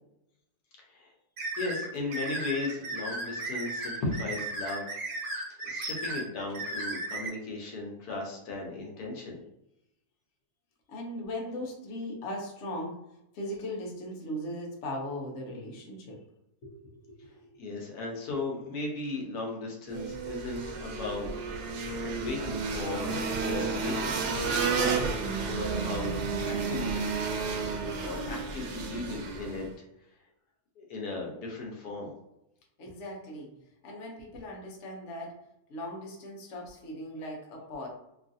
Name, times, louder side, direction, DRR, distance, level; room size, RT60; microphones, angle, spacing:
voice 1, 0.8-1.1 1.6-5.0 5.6-9.4 17.6-21.3 22.1-27.2 28.0-29.7 30.8-32.1, left 2 dB, 80° left, -1 dB, 1.2 m, -36 dB
sound 1, 1.4-7.3, right 2 dB, 55° right, 1.1 m, -35 dB
voice 2, 10.9-13.0 13.3-16.2 16.6-17.2 32.8-33.5 33.8-35.4 35.7-37.9, left 1 dB, 60° left, -2 dB, 0.9 m, -39 dB
sound 2, 19.9-29.7, right 4 dB, 85° right, 1.1 m, -32 dB
3.0 x 2.4 x 2.5 m, 0.85 s
omnidirectional pair, 1.6 m